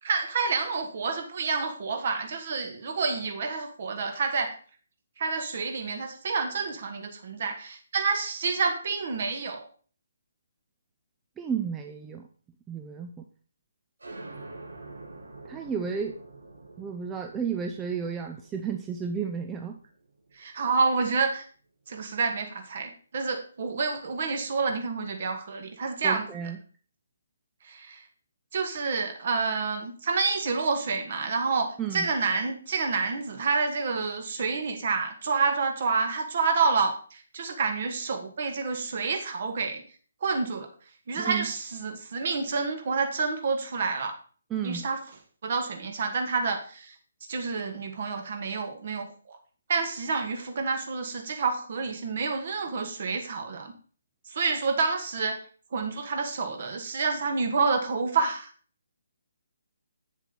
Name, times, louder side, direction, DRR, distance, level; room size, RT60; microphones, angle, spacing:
voice 1, 0.0-4.5 5.2-9.7 20.3-21.4 21.9-26.3 27.6-28.0 28.5-39.8 40.2-40.7 41.1-44.2 44.6-45.0 45.4-46.9 47.3-49.4 49.7-53.7 54.2-55.4 55.7-58.5, right 4 dB, 45° right, 5 dB, 1.7 m, -28 dB
voice 2, 11.4-12.3 12.7-13.2 15.5-16.2 16.8-19.8 26.0-26.6 31.8-32.1 41.2-41.5 44.5-44.8, right 7 dB, 15° right, 4 dB, 0.5 m, -32 dB
sound 1, 14.0-21.3, right 2 dB, 70° right, 1.4 m, -47 dB
8.1 x 7.1 x 4.0 m, 0.42 s
figure-of-eight pair, 140°, 0 cm